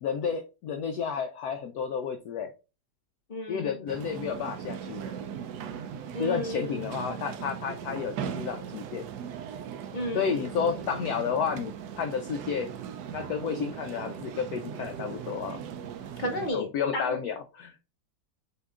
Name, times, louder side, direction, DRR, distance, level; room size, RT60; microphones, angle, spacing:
voice 1, 0.0-2.5 3.5-5.0 6.2-9.1 10.1-12.7 13.1-15.6 16.5-17.7, left 6 dB, 75° left, 6 dB, 0.9 m, -31 dB
voice 2, 3.3-3.8 6.1-7.2 9.9-10.9 16.2-16.7 16.9-17.2, left 1 dB, 90° left, 2 dB, 0.4 m, -34 dB
sound 1, 3.9-16.5, right 8 dB, 70° right, 1.1 m, -39 dB
8.0 x 2.9 x 2.3 m, 0.31 s
omnidirectional pair, 2.0 m